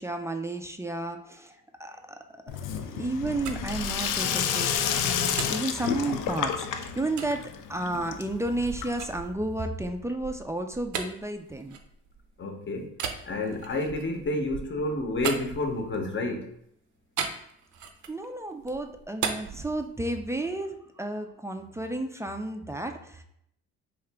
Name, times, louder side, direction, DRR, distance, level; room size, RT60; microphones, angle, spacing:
voice 1, 0.0-1.5 1.8-2.2 2.8-4.7 5.0-11.8 18.1-23.2, right 2 dB, 10° right, 5 dB, 0.3 m, -32 dB
Sink (filling or washing), 2.5-9.3, left 8 dB, 80° left, 0.5 m, -30 dB
sound 1, 3.2-6.5 7.2-7.3 7.9-12.3 12.9-16.1 17.2-18.3 18.6-20.4, right 6 dB, 75° right, 0.6 m, -38 dB
voice 2, 12.4-12.9 13.3-16.5, left 2 dB, 40° left, 5 dB, 0.8 m, -30 dB
3.6 x 2.8 x 3.4 m, 0.73 s
cardioid pair, 90°, 30 cm